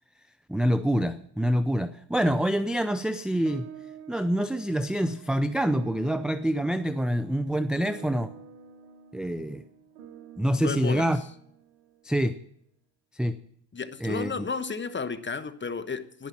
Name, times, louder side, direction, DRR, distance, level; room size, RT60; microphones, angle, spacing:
voice 1, 0.5-3.6 4.1-8.3 9.1-9.6 10.4-11.2 12.0-12.4 13.1-13.4 14.0-14.3, equal, ahead, 12 dB, 0.5 m, -26 dB
sound 1, 3.4-12.1, right 7 dB, 80° right, 1.7 m, -48 dB
voice 2, 10.6-11.1 13.7-16.3, left 5 dB, 20° left, 11 dB, 1.3 m, -33 dB
11.0 x 10.5 x 7.3 m, 0.69 s
supercardioid pair, 75°, 50 cm